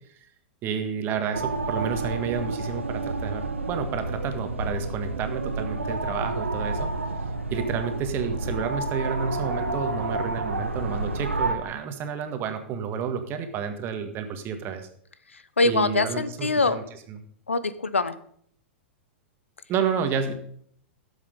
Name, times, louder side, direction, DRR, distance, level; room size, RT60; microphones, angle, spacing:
voice 1, 0.6-6.9 7.5-14.9 15.6-17.2 19.7-20.3, right 6 dB, 35° right, 7 dB, 1.6 m, -30 dB
sound 1, 1.3-11.5, right 2 dB, 90° right, 1.1 m, -30 dB
voice 2, 15.3-16.8 17.5-18.1, left 3 dB, 85° left, 14 dB, 0.8 m, -24 dB
12.5 x 7.3 x 5.3 m, 0.63 s
figure-of-eight pair, 105°, 7 cm